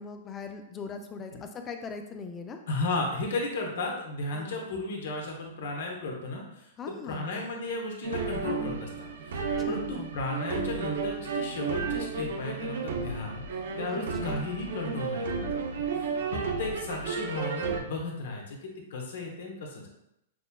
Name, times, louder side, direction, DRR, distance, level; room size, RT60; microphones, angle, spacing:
voice 1, 0.0-2.6 4.3-4.6 6.8-7.3 9.4-10.1 13.9-14.5, left 5 dB, 20° left, 6 dB, 0.4 m, -40 dB
voice 2, 2.7-9.4 9.6-13.4 13.8-16.0 16.3-19.9, left 2 dB, 70° left, 0 dB, 0.9 m, -34 dB
sound 1, 8.0-17.8, right 5 dB, 80° right, 0.6 m, -33 dB
6.0 x 2.2 x 2.3 m, 0.83 s
hypercardioid pair, 135°, 0 cm